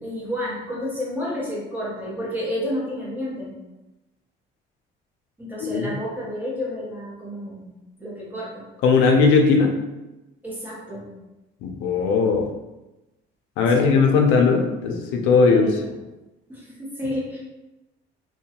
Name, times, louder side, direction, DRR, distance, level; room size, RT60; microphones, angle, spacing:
voice 1, 0.0-3.5 5.4-8.7 10.4-11.1 13.7-14.0 15.5-15.9 16.5-17.4, equal, 10° right, -6 dB, 0.7 m, -31 dB
voice 2, 8.8-9.7 11.6-12.5 13.6-15.6, left 4 dB, 90° left, 2 dB, 0.5 m, -18 dB
2.7 x 2.2 x 2.8 m, 1.0 s
cardioid pair, 160°, 20 cm